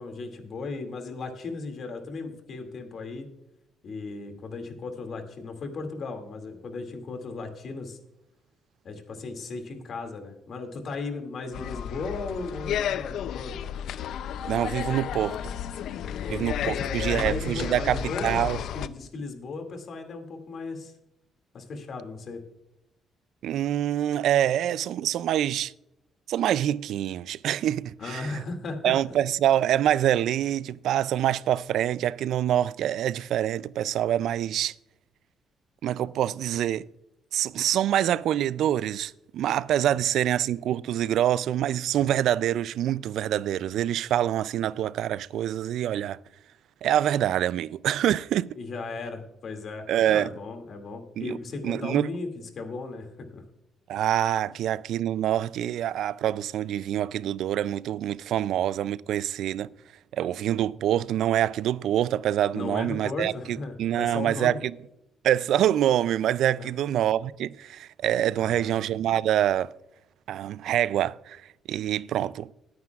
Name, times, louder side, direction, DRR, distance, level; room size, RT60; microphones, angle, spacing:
voice 1, 0.0-3.3 3.8-8.0 8.8-13.5 16.0-20.9 21.5-22.4 28.0-28.9 48.6-53.4 62.5-64.6 66.6-66.7 68.4-68.9, left 3 dB, 55° left, 2.3 m, -36 dB
sound 1, 11.5-18.9, left 9 dB, 75° left, 0.4 m, -32 dB
voice 2, 14.4-15.5 16.3-18.6 23.4-25.7 26.3-28.4 28.8-34.7 35.8-36.9 37.3-46.2 46.8-48.5 49.9-50.3 51.2-51.4 51.6-52.1 53.9-59.7 60.1-64.7 65.2-69.7 70.3-71.4 71.7-72.5, right 11 dB, 80° right, 0.3 m, -26 dB
20.5 x 9.5 x 2.4 m
cardioid pair, 90°, 0 cm